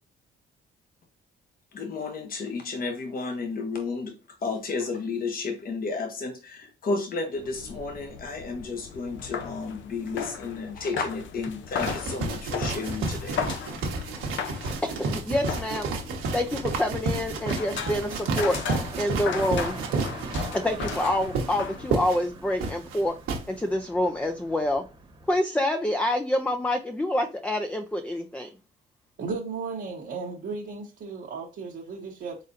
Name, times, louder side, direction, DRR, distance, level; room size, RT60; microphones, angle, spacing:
voice 1, 1.7-13.4, left 4 dB, 45° left, 1.0 m, -32 dB
sound 1, 7.4-22.3, left 7 dB, 70° left, 0.6 m, -37 dB
sound 2, 11.8-23.4, right 3 dB, 85° right, 1.1 m, -31 dB
voice 2, 14.1-15.9 16.3-18.6 19.0-19.8 20.5-23.1 23.5-24.8 25.3-28.5, left 1 dB, 5° left, 0.4 m, -27 dB
Car, 15.8-25.4, right 3 dB, 25° right, 1.1 m, -45 dB
voice 3, 29.2-32.4, right 4 dB, 60° right, 1.0 m, -35 dB
4.0 x 4.0 x 2.6 m
cardioid pair, 90°, 20 cm